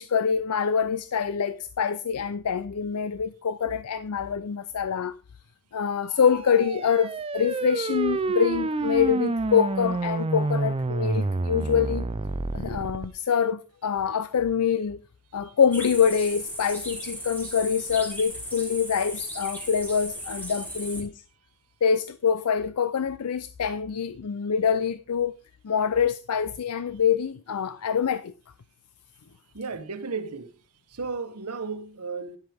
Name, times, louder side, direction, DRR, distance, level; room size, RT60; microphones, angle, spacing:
voice 1, 0.0-5.1 5.7-12.1 12.5-15.0 15.3-21.1 21.8-25.3 25.6-28.3, left 7 dB, 85° left, 0.5 m, -25 dB
Moog Theremin Sweep, 6.1-13.1, right 3 dB, 25° right, 0.5 m, -28 dB
sound 1, 15.7-21.0, right 1 dB, 10° left, 2.8 m, -37 dB
voice 2, 29.5-30.5 30.9-32.4, right 4 dB, 85° right, 1.1 m, -34 dB
11.0 x 7.8 x 3.5 m
head